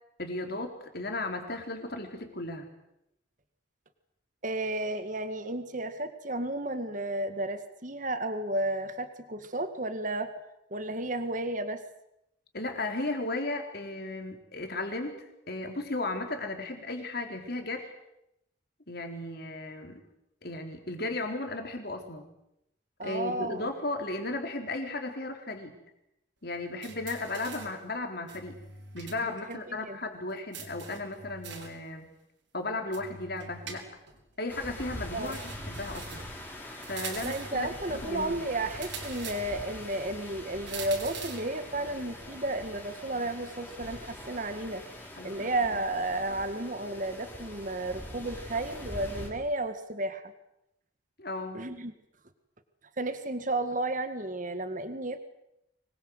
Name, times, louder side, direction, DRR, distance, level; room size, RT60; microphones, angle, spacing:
voice 1, 0.2-2.7 12.5-17.9 18.9-20.0 20.4-22.3 23.0-25.8 26.4-28.6 28.9-32.1 32.5-33.9 34.4-36.3 36.9-38.3 45.2-45.8 51.2-51.6, left 2 dB, 55° left, 4 dB, 4.2 m, -35 dB
voice 2, 4.4-10.3 10.7-11.8 23.0-23.7 29.5-30.0 35.1-35.4 37.2-44.8 45.2-50.3 51.5-51.9 53.0-55.3, right 2 dB, 40° right, 9 dB, 1.9 m, -33 dB
sound 1, 26.8-27.8 28.3-29.2 29.5-29.6 30.5-31.8 32.9-34.2 35.2-36.4 36.8-37.6 38.7-39.7 40.7-41.5, right 5 dB, 70° right, 4.9 m, -43 dB
sound 2, 34.5-49.3, left 1 dB, 10° left, 4.8 m, -43 dB
25.5 x 21.5 x 8.1 m, 0.83 s
head